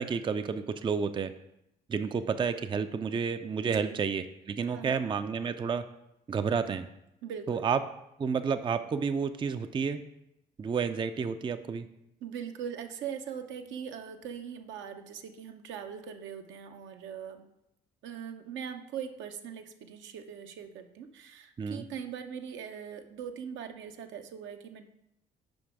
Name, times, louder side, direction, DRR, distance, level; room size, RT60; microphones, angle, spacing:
voice 1, 0.0-1.3 1.9-5.8 6.3-6.9 7.5-7.8 8.2-10.0 10.6-11.9 21.6-21.8, right 6 dB, 25° right, 10 dB, 0.4 m, -30 dB
voice 2, 3.6-4.0 4.7-5.0 7.2-7.7 12.2-17.4 18.0-24.8, right 8 dB, 65° right, 6 dB, 0.6 m, -41 dB
5.3 x 5.0 x 4.7 m, 0.84 s
hypercardioid pair, 50°, 21 cm